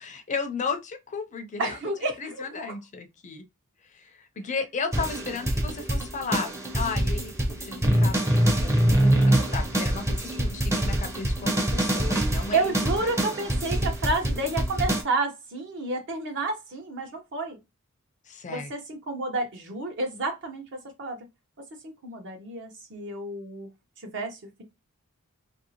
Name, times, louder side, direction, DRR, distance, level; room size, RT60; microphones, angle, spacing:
voice 1, 0.0-3.4 3.9-13.2 18.3-18.7, left 4 dB, 35° left, 0.4 m, -35 dB
voice 2, 1.6-2.7 12.5-17.6 18.5-21.2 21.8-23.7 24.1-24.6, right 2 dB, 55° right, 0.9 m, -30 dB
sound 1, 4.9-15.0, right 1 dB, 15° right, 0.6 m, -25 dB
2.9 x 2.6 x 2.8 m
head